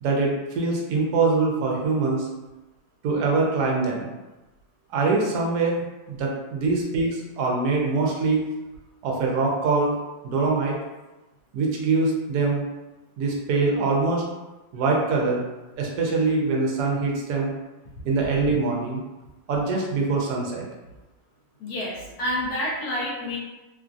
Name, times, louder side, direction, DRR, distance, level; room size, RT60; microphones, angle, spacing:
voice 1, 0.0-2.3 3.0-4.1 4.9-8.5 9.0-9.9 10.2-10.8 11.5-12.6 13.2-14.2 14.7-15.4 15.8-17.5 18.0-19.0 19.5-20.6, right 3 dB, 70° right, -2 dB, 1.1 m, -23 dB
voice 2, 21.6-23.4, left 1 dB, 70° left, -5 dB, 1.0 m, -28 dB
3.1 x 2.5 x 2.4 m, 1.1 s
omnidirectional pair, 1.9 m